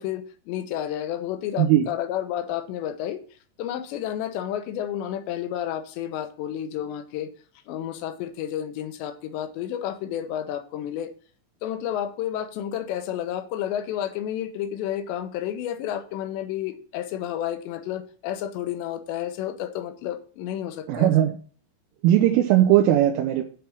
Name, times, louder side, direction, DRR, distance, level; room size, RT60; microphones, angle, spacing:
voice 1, 0.0-3.2 3.6-7.3 7.7-11.1 11.6-21.1, left 10 dB, 75° left, 8 dB, 2.7 m, -31 dB
voice 2, 20.9-21.4 22.0-23.4, right 12 dB, 80° right, 3 dB, 3.2 m, -18 dB
9.4 x 4.6 x 7.0 m, 0.43 s
omnidirectional pair, 6.0 m